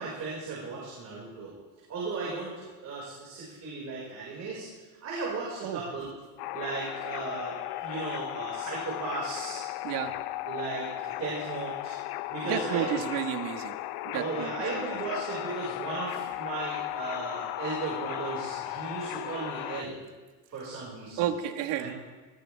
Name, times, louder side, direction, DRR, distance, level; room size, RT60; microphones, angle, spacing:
voice 1, 0.0-1.5 1.9-4.7 5.0-6.1 6.5-9.6 10.5-12.0 12.3-13.0 14.1-20.0 20.5-21.3 21.8-22.0, right 3 dB, 40° right, -6 dB, 5.4 m, -36 dB
sound 1, 6.4-19.8, left 17 dB, 60° left, 0.7 m, -36 dB
voice 2, 12.5-13.8 14.0-15.0 21.2-22.0, right 10 dB, 75° right, 7 dB, 1.7 m, -32 dB
19.5 x 16.0 x 3.5 m, 1.3 s
cardioid pair, 130°, 42 cm